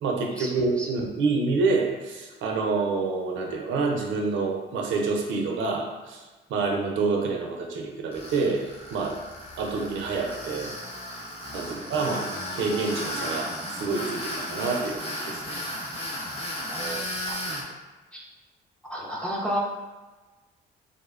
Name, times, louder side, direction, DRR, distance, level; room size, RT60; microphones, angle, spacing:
voice 1, 0.0-6.2 6.5-8.6 8.9-9.2 9.6-10.7 11.5-15.6 17.5-17.6, right 4 dB, 75° right, 1 dB, 0.5 m, -27 dB
Tools, 8.1-17.6, left 1 dB, 30° left, 0.8 m, -34 dB
voice 2, 16.7-17.4 18.9-19.6, equal, 5° left, -4 dB, 0.5 m, -32 dB
2.5 x 2.1 x 2.3 m, 1.2 s
cardioid pair, 90°, 20 cm